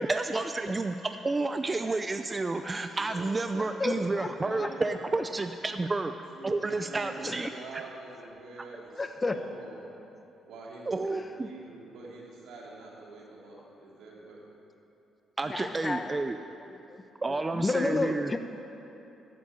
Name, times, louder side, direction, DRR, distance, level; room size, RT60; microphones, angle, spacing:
voice 1, 0.0-6.1 6.4-7.5 10.9-11.5 15.4-16.4 17.2-18.3, right 3 dB, 25° right, 7 dB, 0.5 m, -30 dB
voice 2, 3.2-5.2 6.3-9.9 10.4-14.4, right 3 dB, 80° right, -3 dB, 2.9 m, -46 dB
voice 3, 3.8-4.3 4.6-4.7 7.3-7.4 9.0-9.4 15.5-16.1 16.7-16.8 17.5-18.4, left 3 dB, 25° left, 7 dB, 0.8 m, -30 dB
12.5 x 8.5 x 7.6 m, 2.9 s
cardioid pair, 90°, 0 cm